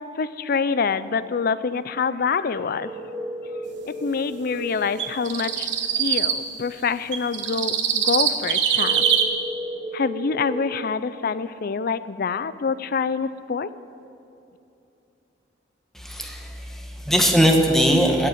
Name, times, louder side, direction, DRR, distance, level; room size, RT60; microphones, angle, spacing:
voice 1, 0.2-2.9 4.0-5.7 6.0-9.1 9.9-13.7, left 5 dB, 50° left, 15 dB, 0.4 m, -26 dB
sound 1, 2.8-4.8 8.8-10.8, right 1 dB, 50° right, 4.1 m, -33 dB
sound 2, 5.0-6.4 7.1-9.2, right 8 dB, 70° right, 1.2 m, -22 dB
voice 2, 15.9-18.3, equal, ahead, 2 dB, 1.3 m, -20 dB
16.0 x 6.6 x 9.0 m, 2.8 s
head